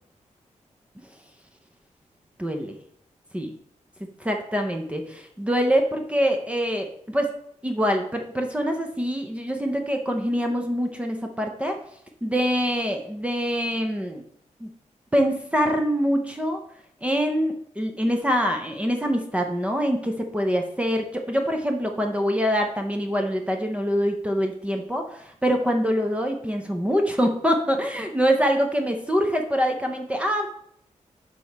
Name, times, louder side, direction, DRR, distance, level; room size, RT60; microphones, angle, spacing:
voice 1, 2.4-2.8 3.3-3.5 4.2-7.3 7.6-11.7 12.2-14.2 14.6-14.7 15.1-16.6 17.0-30.5, equal, 10° right, 3 dB, 0.6 m, -24 dB
6.9 x 4.1 x 4.5 m, 0.68 s
wide cardioid pair, 145°, 13 cm